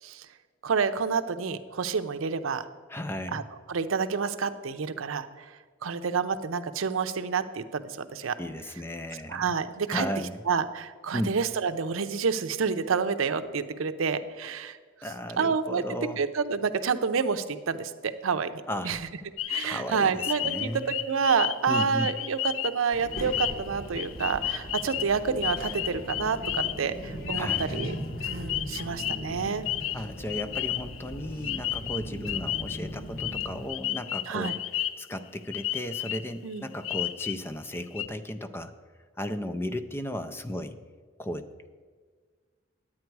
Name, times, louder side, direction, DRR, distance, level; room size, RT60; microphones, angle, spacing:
voice 1, 0.6-2.7 3.3-3.4 3.7-5.5 5.8-8.4 9.3-10.1 10.5-14.8 15.4-15.8 16.2-18.5 18.8-19.0 19.5-28.0 28.2-29.6 34.3-34.5 36.4-36.6, right 5 dB, 90° right, 10 dB, 0.6 m, -28 dB
voice 2, 2.9-3.4 8.4-9.5 9.9-10.4 11.1-11.3 15.0-16.2 18.7-18.9 19.6-21.0 21.7-22.1 27.3-28.0 29.9-34.6 35.0-38.7 39.2-40.8 41.2-41.7, left 1 dB, 10° left, 10 dB, 0.4 m, -35 dB
sound 1, 19.4-31.1 31.4-32.8 33.2-35.2 35.5-36.3 36.8-37.5 37.7-38.1, left 13 dB, 75° left, 0.4 m, -33 dB
Child speech kid speaking, 22.9-33.7, equal, 50° left, 1.4 m, -39 dB
10.5 x 8.7 x 4.6 m, 1.5 s
head